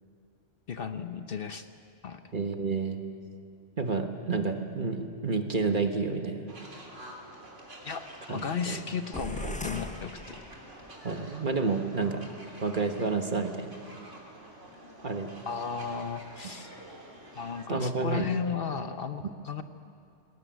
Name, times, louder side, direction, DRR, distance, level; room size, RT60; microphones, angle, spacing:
voice 1, 0.7-1.7 2.0-2.2 7.8-10.4 15.5-16.7 17.3-19.6, left 6 dB, 55° left, 8 dB, 1.0 m, -34 dB
voice 2, 2.3-3.0 3.8-6.5 8.3-8.8 9.4-9.6 11.0-12.2 12.6-13.8 15.0-15.3 17.7-18.3, right 4 dB, 45° right, 5 dB, 1.5 m, -30 dB
sound 1, 6.5-17.7, right 1 dB, 80° right, 3.5 m, -48 dB
sound 2, 9.1-11.0, left 1 dB, 10° left, 0.6 m, -39 dB
19.0 x 19.0 x 9.3 m, 2.4 s
omnidirectional pair, 1.2 m